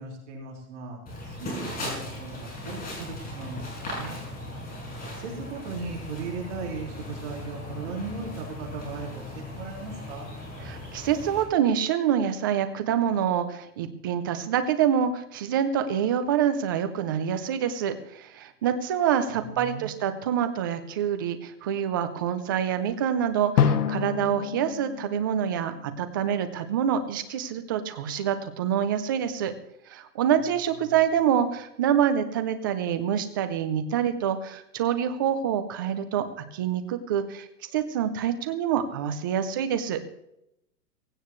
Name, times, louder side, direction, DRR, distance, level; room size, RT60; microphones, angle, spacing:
voice 1, 0.0-4.2 5.1-10.3 19.3-20.2 30.8-31.0, right 4 dB, 45° right, -3 dB, 4.6 m, -38 dB
sound 1, 1.1-11.4, left 1 dB, 20° left, 5.7 m, -38 dB
voice 2, 10.6-29.5 29.9-40.0, right 9 dB, 15° right, 9 dB, 0.4 m, -26 dB
Drum, 23.6-26.3, left 8 dB, 80° left, 1.4 m, -27 dB
17.0 x 16.5 x 3.1 m, 0.79 s
hypercardioid pair, 150°, 47 cm